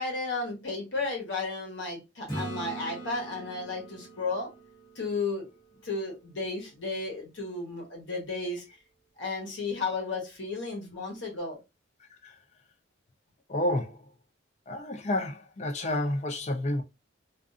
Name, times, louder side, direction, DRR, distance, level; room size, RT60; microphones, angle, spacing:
voice 1, 0.0-4.5 4.9-5.5 5.8-8.6 9.2-11.6, left 3 dB, 70° left, 1.0 m, -33 dB
Acoustic guitar / Strum, 2.3-6.0 10.9-11.0, right 2 dB, 20° left, 1.2 m, -41 dB
voice 2, 13.5-14.0 14.7-16.8, left 1 dB, 35° left, 0.4 m, -30 dB
2.5 x 2.4 x 2.5 m
head